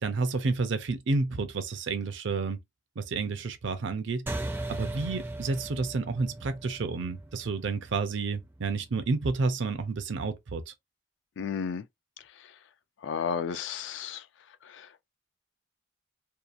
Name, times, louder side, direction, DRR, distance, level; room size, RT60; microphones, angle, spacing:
voice 1, 0.0-2.6 3.0-4.4 4.7-10.7, right 4 dB, 70° right, 0.5 m, -30 dB
sound 1, 4.3-9.1, right 1 dB, 10° right, 0.4 m, -38 dB
voice 2, 11.4-11.8 13.0-14.2 14.7-15.0, left 6 dB, 70° left, 0.4 m, -33 dB
2.8 x 2.3 x 2.4 m
head